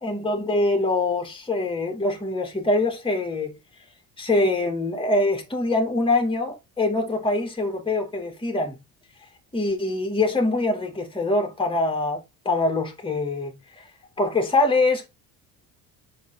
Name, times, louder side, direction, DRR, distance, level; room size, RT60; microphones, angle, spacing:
voice 1, 0.0-3.6 4.2-8.8 9.5-13.5 13.8-13.9 14.2-15.1, left 2 dB, 10° left, 2.9 m, -24 dB
7.0 x 6.1 x 4.2 m
supercardioid pair, 70°, 43 cm